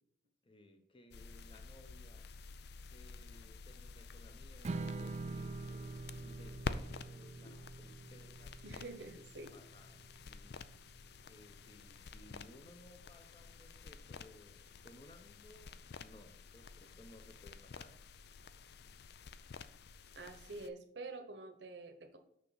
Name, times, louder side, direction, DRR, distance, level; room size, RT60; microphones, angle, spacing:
voice 1, 0.4-2.2 2.9-8.6 9.5-10.6 11.3-18.0, left 1 dB, 30° left, 6 dB, 1.0 m, -60 dB
sound 1, 1.1-20.7, left 4 dB, 65° left, 0.4 m, -50 dB
Strum, 4.6-10.9, right 3 dB, 40° right, 0.4 m, -45 dB
voice 2, 8.6-9.5 20.2-22.2, right 3 dB, 70° right, 5 dB, 1.0 m, -48 dB
6.5 x 5.9 x 4.1 m, 0.72 s
head